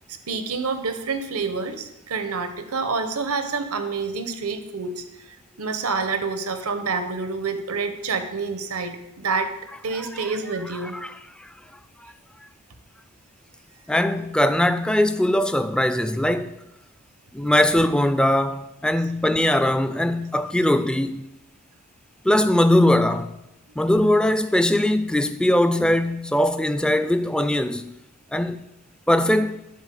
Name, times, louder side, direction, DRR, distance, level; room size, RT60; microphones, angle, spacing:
voice 1, 0.3-9.5 9.8-11.0, right 4 dB, 90° right, 1.0 m, -28 dB
voice 2, 13.9-16.5 17.3-21.3 22.2-23.3 23.8-27.9 28.3-28.6 29.1-29.6, left 1 dB, 5° left, 0.3 m, -20 dB
11.5 x 4.2 x 7.6 m
head